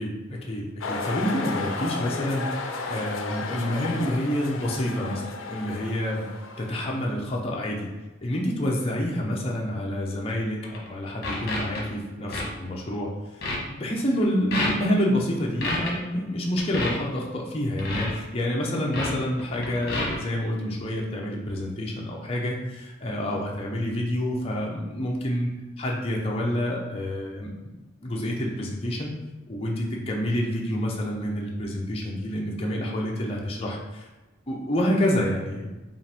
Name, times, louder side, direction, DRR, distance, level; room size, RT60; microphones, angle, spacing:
voice 1, 0.0-5.2 5.5-6.2 6.6-7.9 8.2-13.4 13.8-25.5 25.8-27.7 28.0-29.1 29.5-34.1 34.5-35.7, equal, 30° left, -2 dB, 0.6 m, -28 dB
sound 1, 0.8-7.1, left 3 dB, 75° left, 0.5 m, -34 dB
sound 2, 10.6-10.9 11.2-11.8 12.3-12.4 12.8-13.1 13.4-13.6 14.2-14.3 14.5-14.9 15.6-15.9 16.6-16.9 17.8-18.1 18.9-19.1 19.4-20.2, left 2 dB, 50° left, 1.1 m, -29 dB
5.3 x 2.5 x 3.4 m, 1.1 s
head